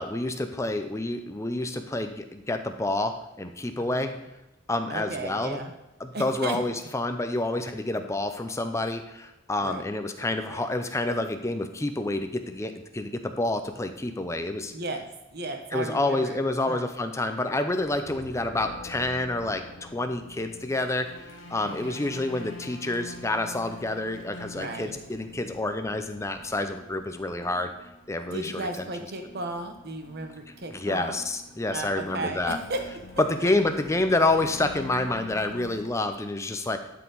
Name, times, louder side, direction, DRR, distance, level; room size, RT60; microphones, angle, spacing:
voice 1, 0.0-4.1 4.7-5.6 6.0-14.7 15.7-21.1 21.5-27.7 28.1-28.7 30.7-32.6 33.3-36.8, left 2 dB, 15° left, 7 dB, 0.6 m, -28 dB
voice 2, 3.8-4.1 4.9-5.7 6.1-6.6 9.6-9.8 10.4-10.6 14.7-15.1 15.3-16.9 18.1-18.2 21.6-22.1 24.5-25.0 28.3-31.2 31.7-32.8 33.2-33.5, right 2 dB, 55° right, 5 dB, 1.1 m, -35 dB
sound 1, 17.7-35.9, left 2 dB, 70° left, 1.3 m, -46 dB
11.5 x 4.8 x 3.9 m, 0.97 s
head